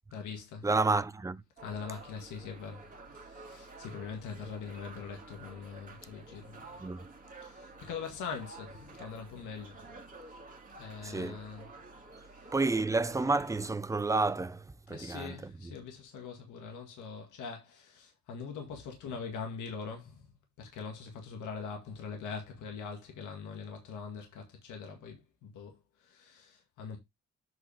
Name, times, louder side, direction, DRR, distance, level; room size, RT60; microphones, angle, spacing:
voice 1, 0.1-0.7 1.6-6.6 7.4-9.9 10.8-11.7 12.2-12.5 14.9-27.0, left 5 dB, 85° left, 1.9 m, -43 dB
voice 2, 0.6-1.4 6.8-7.1 11.0-11.4 12.5-15.5, right 3 dB, 10° right, 0.6 m, -30 dB
sound 1, 1.6-13.7, right 3 dB, 25° right, 2.1 m, -51 dB
7.9 x 5.1 x 3.4 m
cardioid pair, 90°, 30 cm